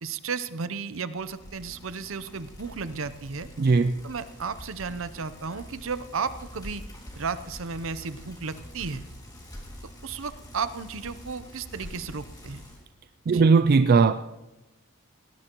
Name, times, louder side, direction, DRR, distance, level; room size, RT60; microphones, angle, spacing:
voice 1, 0.0-3.5 4.0-6.8 7.2-9.0 9.8-12.6 13.3-13.4, right 5 dB, 65° right, 0.7 m, -34 dB
Bicycle, 1.2-12.9, equal, 20° left, 2.3 m, -45 dB
voice 2, 3.6-4.0 13.3-14.1, right 4 dB, 45° right, 0.4 m, -18 dB
18.5 x 18.0 x 3.0 m
head